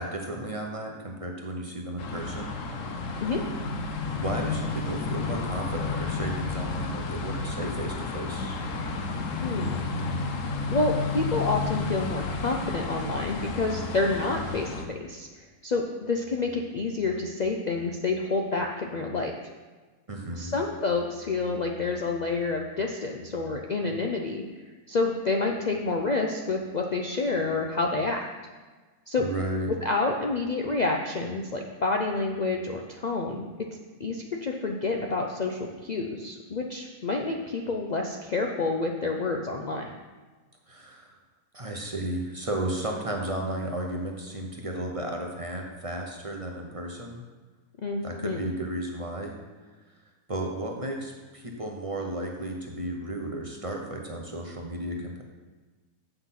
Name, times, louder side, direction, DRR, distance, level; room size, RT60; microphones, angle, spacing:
voice 1, 0.0-2.6 4.1-8.6 20.1-20.5 29.2-29.7 40.7-41.1 41.5-47.2 48.0-49.3 50.3-55.2, right 1 dB, 30° right, 1 dB, 0.8 m, -33 dB
sound 1, 2.0-14.9, left 3 dB, 60° left, 1.1 m, -32 dB
voice 2, 9.4-9.8 10.7-19.3 20.4-24.4 24.9-28.3 29.1-29.2 29.8-33.5 34.0-39.9 47.8-48.5, left 3 dB, 80° left, 1 dB, 0.4 m, -28 dB
8.0 x 6.0 x 5.8 m, 1.3 s
omnidirectional pair, 1.6 m